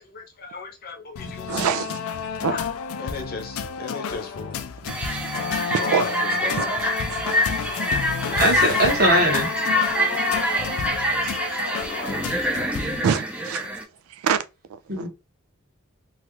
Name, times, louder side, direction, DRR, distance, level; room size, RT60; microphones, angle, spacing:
voice 1, 0.0-1.5 2.5-4.6 5.8-6.8 7.5-7.6 8.1-8.5 9.7-12.9, left 4 dB, 45° left, 0.7 m, -37 dB
sound 1, 1.2-13.0, left 6 dB, 75° left, 0.4 m, -31 dB
voice 2, 1.5-2.0 2.4-2.6 5.0-5.4 5.7-6.0 6.6-6.7 7.1-7.2 13.0-13.7 14.1-14.4 14.7-15.1, right 7 dB, 75° right, 0.3 m, -25 dB
sound 2, 4.9-13.8, equal, 5° right, 0.5 m, -25 dB
voice 3, 8.4-9.5 14.9-15.1, right 1 dB, 45° right, 1.3 m, -20 dB
3.1 x 2.4 x 3.0 m
head